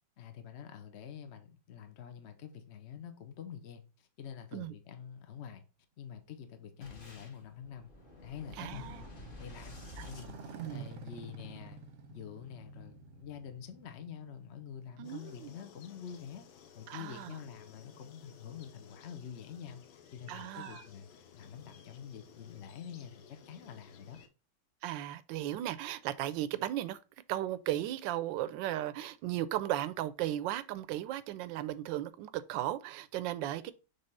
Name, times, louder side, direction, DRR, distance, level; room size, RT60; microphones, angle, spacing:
voice 1, 0.2-5.6 6.0-7.9 8.2-9.0 9.4-9.8 10.0-11.8 12.1-16.4 16.7-24.2, left 8 dB, 60° left, 0.7 m, -47 dB
Motorcycle, 6.2-16.2, right 4 dB, 50° right, 0.9 m, -52 dB
Boom, 6.8-11.2, left 2 dB, 30° left, 1.1 m, -51 dB
voice 2, 8.6-9.1 10.0-10.1 10.5-10.9 15.0-15.6 16.9-17.3 20.3-20.8 24.8-27.0 27.3-33.7, right 13 dB, 75° right, 1.2 m, -36 dB
sound 1, 15.0-24.3, left 7 dB, 80° left, 1.7 m, -57 dB
6.8 x 3.5 x 4.1 m
omnidirectional pair, 2.2 m